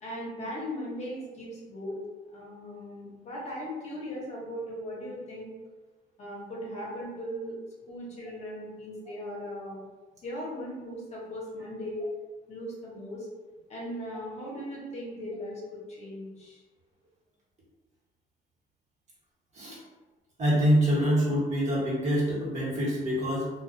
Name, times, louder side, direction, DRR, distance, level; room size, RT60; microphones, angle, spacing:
voice 1, 0.0-2.0 2.3-5.5 6.2-7.6 7.9-9.8 10.2-12.1 12.5-13.3 13.7-16.6, equal, 40° left, -4 dB, 0.8 m, -38 dB
voice 2, 20.4-23.5, equal, 45° right, -7 dB, 1.1 m, -25 dB
2.3 x 2.2 x 2.5 m, 1.3 s
cardioid pair, 110°, 17 cm